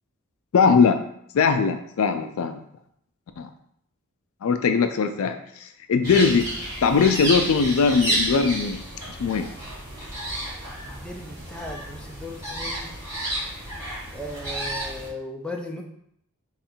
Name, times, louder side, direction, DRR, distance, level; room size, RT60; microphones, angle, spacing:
voice 1, 0.5-1.0 1.3-2.6 3.4-3.5 4.4-6.5 6.8-8.8 9.2-9.5, left 5 dB, 65° left, 8 dB, 0.4 m, -20 dB
sound 1, 6.0-15.1, right 1 dB, 15° right, 1.5 m, -31 dB
voice 2, 10.8-12.9 14.1-15.8, left 1 dB, 5° left, 1 dB, 0.4 m, -37 dB
3.6 x 2.4 x 4.3 m, 0.70 s
head